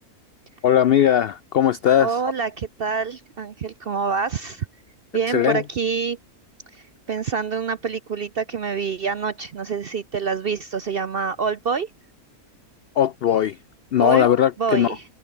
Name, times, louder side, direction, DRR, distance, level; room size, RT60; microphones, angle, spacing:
voice 1, 0.6-2.2 5.3-5.6 13.0-13.6 13.9-15.0, left 10 dB, 85° left, 0.5 m, -19 dB
voice 2, 2.0-4.7 5.1-6.2 7.1-11.9 14.0-14.3 14.6-15.0, right 5 dB, 55° right, 0.7 m, -26 dB
omnidirectional pair, 1.6 m